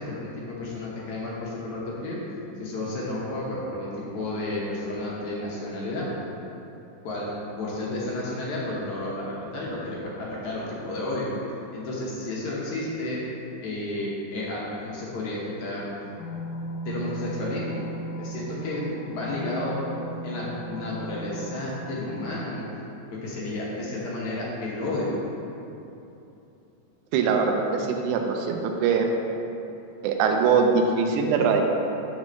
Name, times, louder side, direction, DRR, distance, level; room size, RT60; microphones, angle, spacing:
voice 1, 0.0-2.2 2.6-6.1 7.0-7.3 7.6-11.3 11.7-13.2 13.6-15.9 16.9-17.9 18.2-19.8 20.2-22.7 23.1-25.2, left 2 dB, 70° left, -5 dB, 2.3 m, -32 dB
sound 1, 16.2-22.4, right 1 dB, 90° left, 2.2 m, -36 dB
voice 2, 27.1-29.1 30.0-31.6, right 5 dB, 80° right, 3 dB, 2.0 m, -22 dB
6.3 x 4.1 x 6.4 m, 2.9 s
omnidirectional pair, 3.7 m